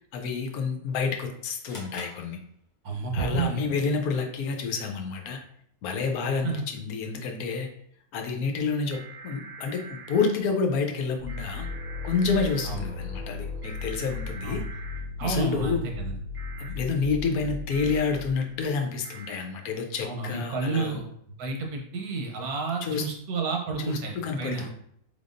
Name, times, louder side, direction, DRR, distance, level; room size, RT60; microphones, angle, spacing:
voice 1, 0.0-2.4 3.1-5.4 5.8-7.7 8.1-11.7 12.0-14.6 15.2-15.8 16.6-21.0 22.8-23.1 23.8-24.7, left 5 dB, 80° left, 3 dB, 1.1 m, -29 dB
sound 1, 1.6-3.1, left 1 dB, 35° left, 0.9 m, -46 dB
voice 2, 2.8-3.6 6.4-6.7 12.6-12.8 14.4-14.6 15.2-16.2 20.0-21.1 21.4-24.6, right 4 dB, 85° right, 1 dB, 1.3 m, -30 dB
sound 2, 8.9-10.3 11.3-12.6 13.6-15.0 16.3-16.7 17.7-18.0 19.0-19.4, right 5 dB, 35° right, 0.8 m, -44 dB
Moog Martriarch Heavy Bass Single Note by Ama Zeus, 11.2-18.6, left 4 dB, 60° right, 1.4 m, -36 dB
4.2 x 3.5 x 2.5 m, 0.69 s
omnidirectional pair, 1.5 m